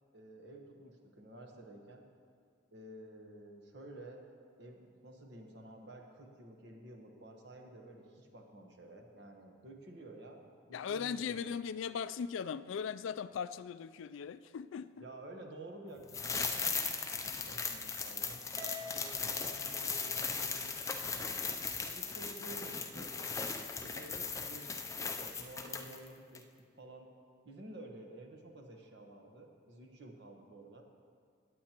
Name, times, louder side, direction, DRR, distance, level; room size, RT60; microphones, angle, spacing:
voice 1, 0.1-2.0 2.7-4.2 4.6-10.4 10.7-11.5 15.0-21.4 21.8-23.3 23.8-26.4 26.8-27.1 27.4-30.8, right 2 dB, 60° right, 2 dB, 1.2 m, -52 dB
voice 2, 10.7-15.0, left 7 dB, 80° left, 14 dB, 0.3 m, -39 dB
sound 1, 16.1-26.1 26.3-26.4, left 5 dB, 15° left, 0.4 m, -38 dB
Harp, 18.6-21.0, left 3 dB, 20° right, 0.9 m, -49 dB
18.0 x 8.4 x 3.0 m, 2.1 s
head